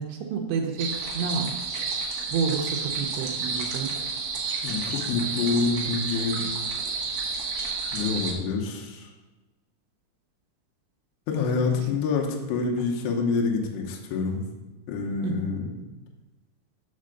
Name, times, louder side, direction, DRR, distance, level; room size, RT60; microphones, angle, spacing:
voice 1, 0.0-1.6 2.3-3.9 12.8-12.9 15.2-15.5, right 5 dB, 85° right, 0 dB, 2.4 m, -29 dB
sound 1, 0.8-8.3, right 4 dB, 70° right, 2.3 m, -30 dB
voice 2, 4.6-6.4 7.9-9.1 11.3-14.4 14.9-15.6, left 4 dB, 75° left, 0 dB, 2.7 m, -27 dB
6.6 x 4.3 x 6.4 m, 1.1 s
omnidirectional pair, 5.8 m